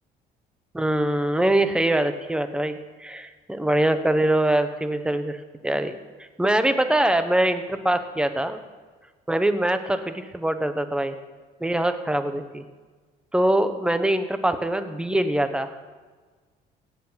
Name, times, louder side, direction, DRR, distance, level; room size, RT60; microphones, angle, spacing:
voice 1, 0.7-5.4 5.6-5.9 6.4-8.6 9.3-11.2 11.6-12.6 13.3-15.7, right 1 dB, 5° right, 9 dB, 1.0 m, -23 dB
16.5 x 8.5 x 5.8 m, 1.4 s
cardioid pair, 110°, 17 cm